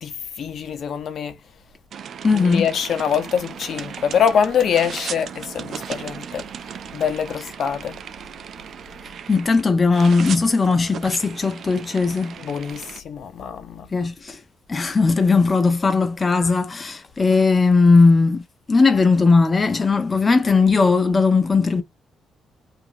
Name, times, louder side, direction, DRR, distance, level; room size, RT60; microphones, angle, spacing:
voice 1, 0.0-1.4 2.3-6.5 6.9-8.0 12.4-13.9, left 7 dB, 60° left, 0.7 m, -24 dB
sound 1, 1.9-9.6 9.9-13.0, right 7 dB, 60° right, 0.4 m, -36 dB
voice 2, 2.2-2.7 9.3-12.4 13.9-14.4 14.7-21.8, left 4 dB, 30° left, 0.5 m, -18 dB
2.8 x 2.5 x 2.5 m
cardioid pair, 90°, 0 cm